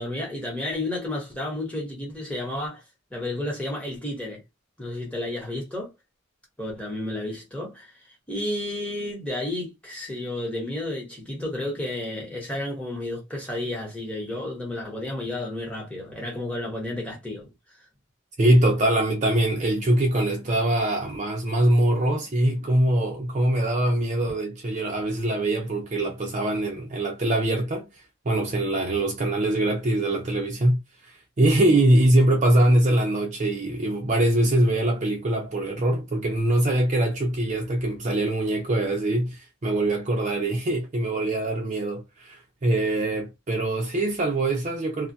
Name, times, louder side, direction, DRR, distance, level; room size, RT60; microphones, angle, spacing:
voice 1, 0.0-2.8 3.1-4.4 4.8-5.9 6.6-7.9 8.3-17.5, left 1 dB, 5° left, 1.0 m, -31 dB
voice 2, 18.4-27.9 28.3-30.8 31.4-45.1, right 1 dB, 35° right, 0.5 m, -23 dB
2.2 x 2.1 x 2.6 m
head